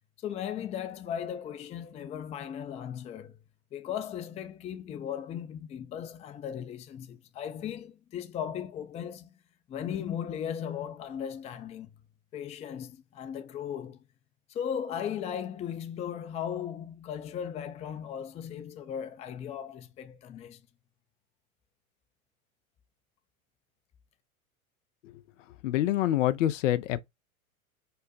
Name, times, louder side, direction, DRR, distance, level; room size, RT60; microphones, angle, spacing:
voice 1, 0.2-3.4 3.7-9.3 9.7-11.9 12.3-14.0 14.5-20.6, left 9 dB, 15° left, 0.5 m, -37 dB
voice 2, 25.6-27.0, left 13 dB, 60° left, 0.6 m, -26 dB
5.5 x 2.1 x 3.9 m
hypercardioid pair, 100°, 43 cm